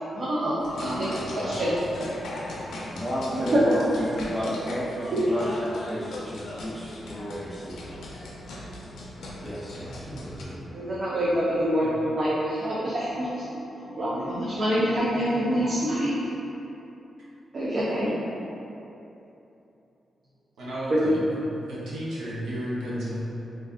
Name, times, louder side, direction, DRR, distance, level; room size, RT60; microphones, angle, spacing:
voice 1, 0.1-1.7 3.5-3.6 5.1-5.2 10.7-13.4 13.8-16.2 17.5-18.1 21.0-21.1, equal, 40° right, -8 dB, 0.4 m, -26 dB
sound 1, 0.6-10.4, left 1 dB, 85° left, 0.4 m, -38 dB
voice 2, 1.1-1.7 10.1-10.2 11.8-11.9 20.6-21.4 21.7-23.2, right 1 dB, 85° right, -8 dB, 0.7 m, -34 dB
voice 3, 2.9-7.9 9.4-10.7, equal, 5° left, -9 dB, 0.7 m, -32 dB
2.5 x 2.3 x 3.5 m, 2.9 s
wide cardioid pair, 145°, 0 cm